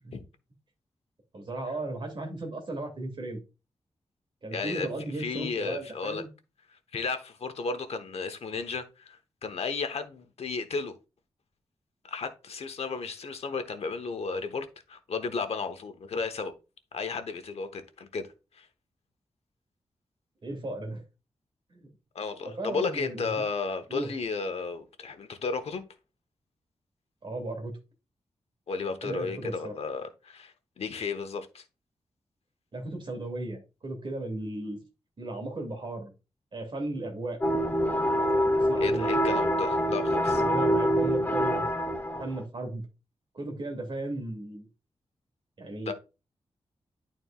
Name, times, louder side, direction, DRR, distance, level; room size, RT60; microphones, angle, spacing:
voice 1, 1.3-3.4 4.4-6.3 20.4-21.0 21.7-21.9 22.4-23.4 23.9-24.1 27.2-27.8 29.0-29.7 32.7-34.8 35.2-36.1 36.5-37.4 38.6-39.1 40.4-41.6 42.2-42.8 43.3-44.7 45.6-45.9, right 2 dB, 50° right, 2.3 m, -35 dB
voice 2, 4.5-4.9 5.2-6.2 6.9-11.0 12.0-16.5 16.9-18.2 18.5-18.7 22.1-25.8 28.7-31.6 38.8-40.4 45.9-46.0, left 4 dB, 75° left, 1.0 m, -33 dB
sound 1, 37.4-42.4, equal, 20° left, 0.9 m, -25 dB
11.0 x 4.3 x 2.4 m
wide cardioid pair, 140°, 11 cm